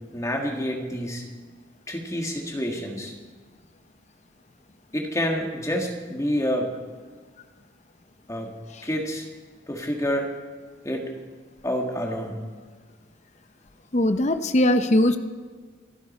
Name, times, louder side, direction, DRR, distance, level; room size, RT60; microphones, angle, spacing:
voice 1, 0.1-1.2 1.9-3.1 4.9-6.7 8.3-8.5 8.8-9.3 9.7-10.3 10.8-11.1 11.6-12.5, equal, 15° left, 1 dB, 1.8 m, -28 dB
voice 2, 13.9-15.2, left 1 dB, 35° left, 9 dB, 0.7 m, -20 dB
27.5 x 9.8 x 4.3 m, 1.5 s
head